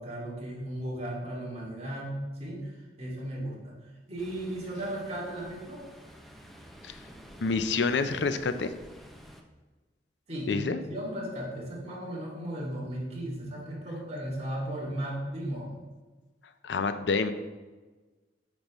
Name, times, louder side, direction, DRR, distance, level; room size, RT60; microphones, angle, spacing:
voice 1, 0.0-3.8 4.1-5.8 10.3-15.7, right 1 dB, 40° right, -5 dB, 2.2 m, -36 dB
Ocean, 4.2-9.4, equal, ahead, 0.6 m, -50 dB
voice 2, 7.4-8.7 10.5-10.8 16.6-17.3, left 4 dB, 85° left, 10 dB, 0.5 m, -27 dB
8.6 x 5.3 x 3.1 m, 1.3 s
head